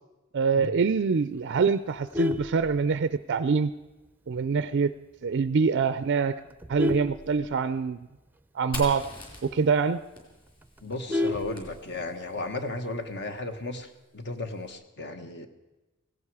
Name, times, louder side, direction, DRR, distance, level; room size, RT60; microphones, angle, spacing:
voice 1, 0.3-3.7 4.3-4.9 5.2-6.3 6.7-8.1 8.5-9.1 9.4-10.0, right 5 dB, 55° right, 13 dB, 0.4 m, -25 dB
Vehicle horn car horn honking, 1.9-3.4 3.8-4.1 4.4-4.5 4.9-5.0 5.3-5.7 6.2-8.0 8.4-8.5 8.8-8.9 9.3-9.4 9.8-9.9 10.1-12.2 13.3-13.8, left 2 dB, 10° right, 0.6 m, -32 dB
Fire, 8.7-12.4, left 1 dB, 25° left, 4.2 m, -42 dB
voice 2, 10.8-15.5, left 2 dB, 55° left, 7 dB, 1.3 m, -35 dB
17.5 x 16.5 x 4.8 m, 1.1 s
head